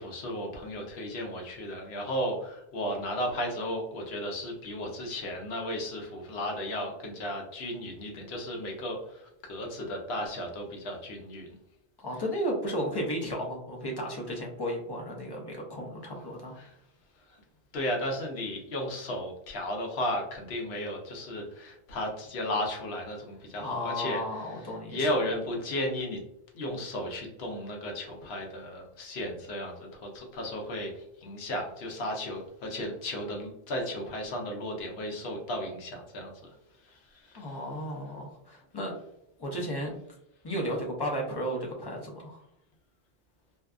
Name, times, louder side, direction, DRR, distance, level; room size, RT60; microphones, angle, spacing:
voice 1, 0.0-11.5 16.6-16.7 17.7-24.2 24.9-26.2 26.5-36.5 37.3-37.5, left 1 dB, 75° left, 1 dB, 0.9 m, -34 dB
voice 2, 12.0-16.6 23.6-25.1 37.4-38.9 39.4-40.0 40.4-42.4, equal, 40° left, -1 dB, 0.4 m, -34 dB
2.6 x 2.3 x 2.3 m, 0.79 s
omnidirectional pair, 1.1 m